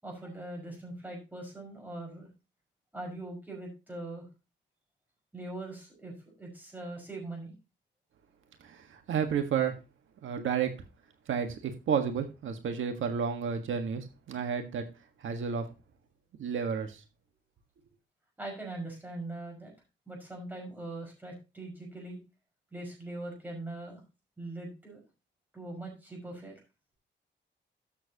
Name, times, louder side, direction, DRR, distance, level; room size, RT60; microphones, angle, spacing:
voice 1, 0.0-2.3 2.9-4.2 5.3-7.5 18.4-19.7 20.1-22.2 22.7-24.0 24.4-25.0 25.5-26.6, right 2 dB, 10° right, 0 dB, 5.6 m, -41 dB
voice 2, 8.6-9.8 10.2-10.7 11.3-14.9 15.2-15.7 16.4-17.0, right 7 dB, 90° right, 6 dB, 1.6 m, -31 dB
13.0 x 7.6 x 2.9 m, 0.28 s
wide cardioid pair, 175°, 20 cm